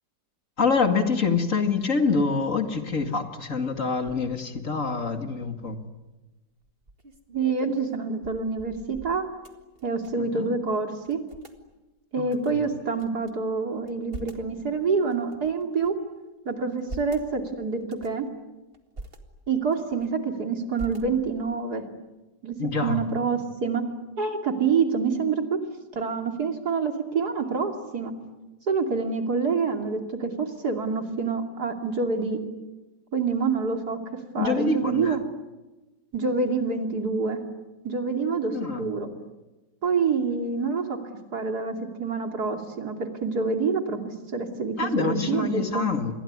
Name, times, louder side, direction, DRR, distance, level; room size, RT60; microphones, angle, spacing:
voice 1, 0.6-5.8 10.2-10.5 12.2-12.6 22.6-23.0 34.4-35.2 38.5-38.9 44.8-46.1, left 4 dB, 45° left, 7 dB, 2.4 m, -26 dB
sound 1, 5.8-6.1 6.6-10.4 10.6-10.7 11.0-11.6 12.3-13.3 13.8-14.5 15.1-16.0 16.6-17.3 17.8-18.3 18.7-19.2 19.7-20.3 20.7-21.5, right 2 dB, 30° right, 2.2 m, -44 dB
voice 2, 7.3-9.2 9.8-11.2 12.1-15.9 16.4-18.3 19.5-21.8 22.4-22.5 22.8-23.8 24.2-25.6 25.9-28.1 28.7-32.4 33.1-34.0 34.3-35.2 36.1-37.4 37.8-39.1 39.8-41.0 41.3-45.9, right 4 dB, 60° right, 5 dB, 3.3 m, -27 dB
28.0 x 22.0 x 9.6 m, 1.1 s
omnidirectional pair, 1.9 m